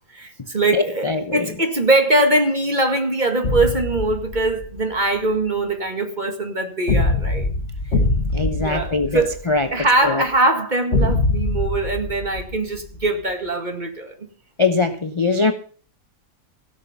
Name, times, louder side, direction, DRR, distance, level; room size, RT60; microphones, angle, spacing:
voice 1, 0.1-7.5 8.6-9.3 9.7-14.2, right 2 dB, 30° right, 1.9 m, -22 dB
voice 2, 0.7-1.5 8.3-9.7 10.0-10.2 14.6-15.5, left 3 dB, 25° left, 0.7 m, -21 dB
sound 1, 3.4-4.8 6.9-9.8 10.9-13.1, left 2 dB, 50° left, 2.2 m, -23 dB
16.5 x 6.6 x 6.9 m
omnidirectional pair, 1.5 m